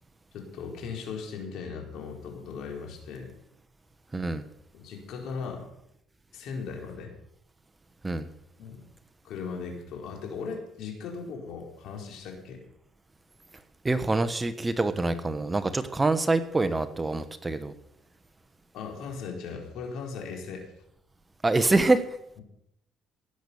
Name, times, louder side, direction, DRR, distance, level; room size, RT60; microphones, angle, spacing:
voice 1, 0.3-3.3 4.7-5.7 6.3-7.1 8.6-8.8 9.2-12.6 18.7-20.7, left 5 dB, 70° left, 1 dB, 4.4 m, -38 dB
voice 2, 4.1-4.4 8.0-8.3 13.8-17.7 21.4-22.0, right 2 dB, 20° right, 11 dB, 1.2 m, -25 dB
17.5 x 8.1 x 7.1 m, 0.77 s
cardioid pair, 95°, 0 cm